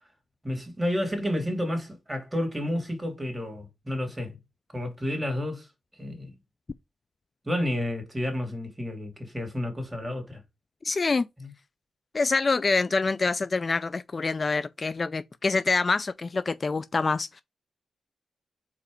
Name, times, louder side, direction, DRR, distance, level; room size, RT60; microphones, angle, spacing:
voice 1, 0.4-4.4 4.7-5.7 6.0-6.3 7.4-10.4 11.4-11.5, left 1 dB, 15° right, 3.0 m, -30 dB
voice 2, 10.8-11.3 12.1-17.4, left 3 dB, 40° left, 0.4 m, -26 dB
4.9 x 4.2 x 5.1 m
cardioid pair, 80°, 0 cm